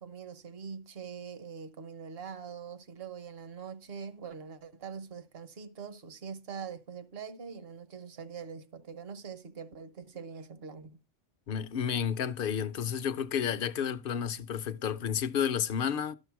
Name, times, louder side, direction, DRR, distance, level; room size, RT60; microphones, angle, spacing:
voice 1, 0.0-11.0, right 6 dB, 60° right, 1.2 m, -43 dB
voice 2, 11.5-16.2, left 8 dB, 55° left, 0.8 m, -31 dB
12.0 x 6.6 x 4.6 m
omnidirectional pair, 1.2 m